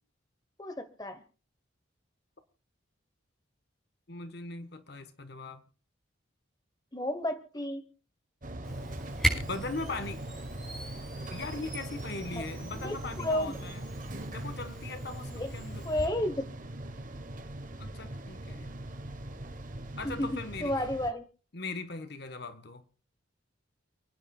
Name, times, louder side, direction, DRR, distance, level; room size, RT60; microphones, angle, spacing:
voice 1, 0.6-1.2 6.9-7.8 12.3-12.5 12.8-13.6 15.3-15.5 15.8-16.5 20.0-21.2, left 1 dB, 20° left, 1.1 m, -32 dB
voice 2, 4.1-5.6 9.3-10.2 11.3-13.8 14.3-15.8 17.8-18.7 20.0-20.8 21.5-22.8, left 3 dB, 55° left, 1.2 m, -39 dB
sound 1, 8.4-21.1, right 1 dB, 40° right, 1.2 m, -41 dB
Camera, 8.6-16.1, right 1 dB, ahead, 5.4 m, -38 dB
29.5 x 9.8 x 2.3 m
head